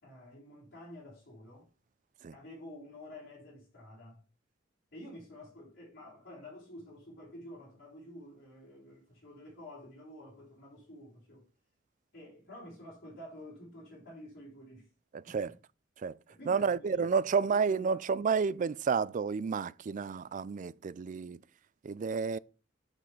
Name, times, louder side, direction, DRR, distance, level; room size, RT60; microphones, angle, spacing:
voice 1, 0.0-1.7 2.3-4.2 4.9-11.5 12.1-14.9 15.3-15.5 16.3-17.1 17.4-18.0, left 1 dB, 55° left, 3.7 m, -50 dB
voice 2, 16.5-21.4 21.8-22.4, right 5 dB, 40° right, 0.3 m, -30 dB
6.6 x 6.1 x 5.6 m
head